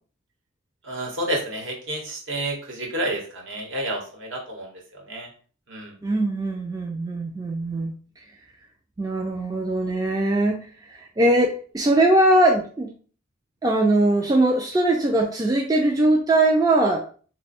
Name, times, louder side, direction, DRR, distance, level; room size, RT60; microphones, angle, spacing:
voice 1, 0.8-5.3 5.7-5.9, right 1 dB, 60° right, 0 dB, 1.1 m, -30 dB
voice 2, 6.0-7.9 9.0-10.6 10.9-12.9 13.6-17.0, right 1 dB, 15° right, 0 dB, 0.3 m, -21 dB
3.0 x 2.2 x 4.2 m, 0.41 s
head